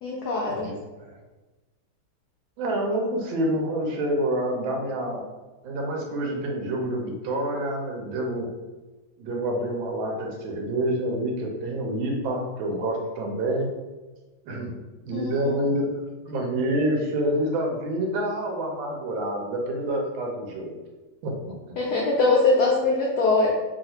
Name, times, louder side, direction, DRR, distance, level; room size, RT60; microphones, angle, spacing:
voice 1, 0.0-0.7 15.1-15.5 21.8-23.5, left 3 dB, 85° left, -3 dB, 0.8 m, -22 dB
voice 2, 2.6-5.2 5.6-8.5 9.2-13.7 14.4-14.8 15.1-20.8 21.2-21.5, right 1 dB, 75° right, 1 dB, 1.3 m, -27 dB
3.2 x 2.4 x 2.8 m, 1.2 s
omnidirectional pair, 2.2 m